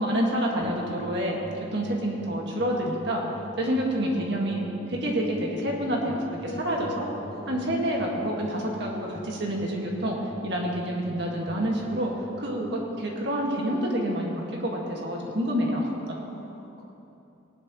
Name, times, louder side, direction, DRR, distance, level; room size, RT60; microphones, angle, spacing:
voice 1, 0.0-3.2 3.6-7.0 7.5-10.2 10.4-12.1 12.4-15.9, equal, 55° right, -2 dB, 1.9 m, -28 dB
sound 1, 0.6-13.7, left 1 dB, 30° left, 1.8 m, -44 dB
voice 2, 3.6-4.6 6.4-7.7 16.1-16.9, left 1 dB, 50° left, -6 dB, 2.7 m, -41 dB
18.0 x 11.5 x 3.1 m, 2.9 s
head